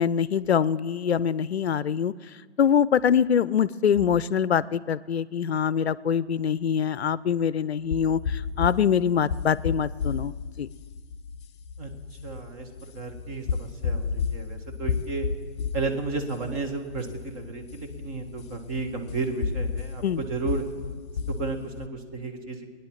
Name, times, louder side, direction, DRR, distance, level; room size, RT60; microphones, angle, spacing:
voice 1, 0.0-2.1 2.6-10.7 20.0-20.2, left 8 dB, 65° left, 19 dB, 0.6 m, -24 dB
sound 1, 7.9-21.9, left 5 dB, 25° left, 0.6 m, -33 dB
voice 2, 12.2-12.7 12.9-15.3 15.7-20.6 21.3-22.7, right 3 dB, 30° right, 5 dB, 1.7 m, -33 dB
19.0 x 9.9 x 7.3 m, 1.5 s
figure-of-eight pair, 130°, 35 cm